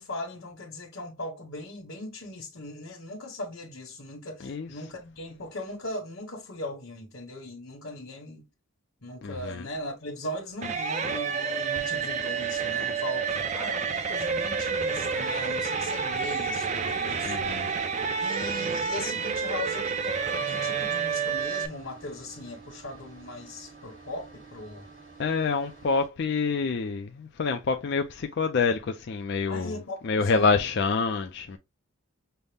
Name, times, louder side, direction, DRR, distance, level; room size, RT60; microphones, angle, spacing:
voice 1, 0.0-8.5 9.0-17.7 18.2-24.9 29.5-30.7, left 1 dB, 75° left, 1.2 m, -39 dB
voice 2, 9.2-9.6 17.2-17.7 25.2-29.8 30.0-31.6, left 4 dB, 55° left, 0.4 m, -27 dB
sound 1, 10.6-21.7, right 5 dB, 35° right, 0.5 m, -29 dB
sound 2, 11.8-26.1, right 4 dB, 65° right, 2.4 m, -49 dB
5.5 x 2.1 x 3.3 m
head